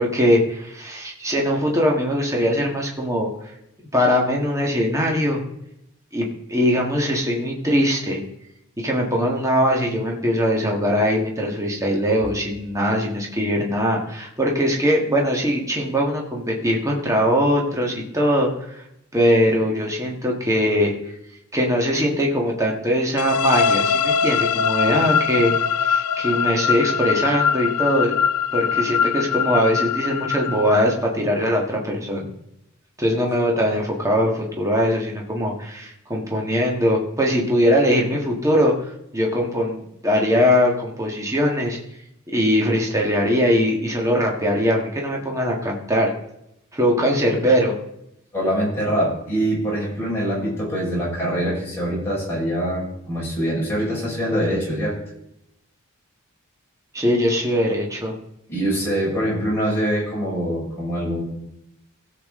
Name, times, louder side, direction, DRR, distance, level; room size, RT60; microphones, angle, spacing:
voice 1, 0.0-3.5 3.9-5.4 6.1-8.2 8.8-18.8 19.1-21.1 21.5-28.1 28.5-32.3 33.0-41.8 42.3-46.1 46.7-47.8 56.9-58.1, equal, 15° right, -1 dB, 1.6 m, -21 dB
sound 1, 23.2-31.0, left 7 dB, 90° left, 0.4 m, -22 dB
voice 2, 48.3-55.0 58.5-61.2, equal, 10° left, -6 dB, 5.2 m, -24 dB
16.5 x 7.4 x 3.7 m, 0.80 s
head